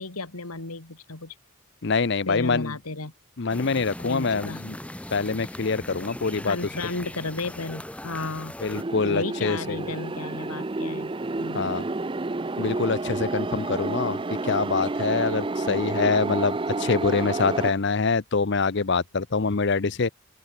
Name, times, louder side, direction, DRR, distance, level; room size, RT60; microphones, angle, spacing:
voice 1, 0.0-1.3 2.3-3.1 4.0-4.6 6.5-8.5 9.0-11.1 11.4-11.8, left 3 dB, 90° left, 2.5 m, -33 dB
voice 2, 1.8-2.7 3.4-4.8 5.1-6.6 8.6-9.8 11.5-11.8 12.6-20.1, left 4 dB, 50° left, 0.7 m, -25 dB
sound 1, 3.5-8.8, left 1 dB, 5° left, 1.9 m, -39 dB
sound 2, 8.7-17.7, right 2 dB, 20° right, 0.5 m, -30 dB
open air
head